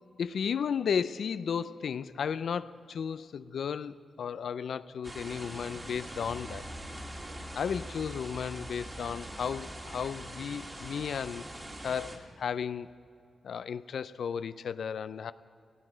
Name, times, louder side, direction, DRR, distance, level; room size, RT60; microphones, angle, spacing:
voice 1, 0.2-6.6 7.5-11.4 11.8-12.9 13.4-15.3, left 7 dB, 75° left, 14 dB, 0.3 m, -34 dB
sound 1, 5.0-12.2, right 1 dB, 20° right, 1.8 m, -43 dB
18.0 x 14.5 x 5.0 m, 2.5 s
wide cardioid pair, 100°, 0 cm